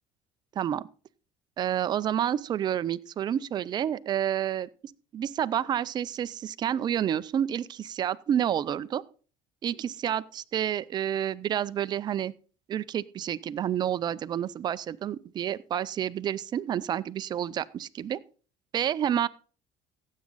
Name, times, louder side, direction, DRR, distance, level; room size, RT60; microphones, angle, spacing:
voice 1, 1.6-4.7 5.1-9.0 9.6-12.3 12.7-18.2 18.7-19.3, right 10 dB, 35° right, 14 dB, 0.4 m, -29 dB
15.5 x 7.3 x 4.0 m, 0.38 s
cardioid pair, 120°, 12 cm